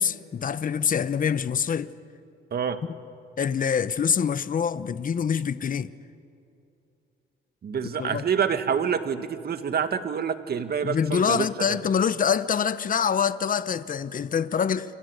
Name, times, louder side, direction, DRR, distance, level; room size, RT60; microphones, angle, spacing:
voice 1, 0.0-1.9 3.4-5.9 8.0-8.2 10.8-14.9, left 7 dB, 45° left, 1.0 m, -25 dB
voice 2, 7.6-11.8, right 7 dB, 50° right, 1.9 m, -27 dB
27.5 x 26.0 x 8.2 m
cardioid pair, 90°, 20 cm